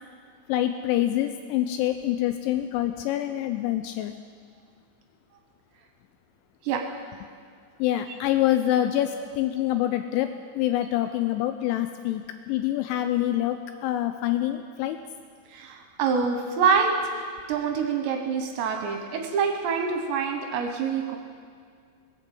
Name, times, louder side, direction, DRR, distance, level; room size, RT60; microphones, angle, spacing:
voice 1, 0.5-4.1 7.8-15.0, left 13 dB, 85° left, 8 dB, 2.7 m, -26 dB
voice 2, 15.5-21.2, right 6 dB, 75° right, 3 dB, 3.0 m, -26 dB
20.5 x 7.5 x 7.7 m, 2.1 s
omnidirectional pair, 5.8 m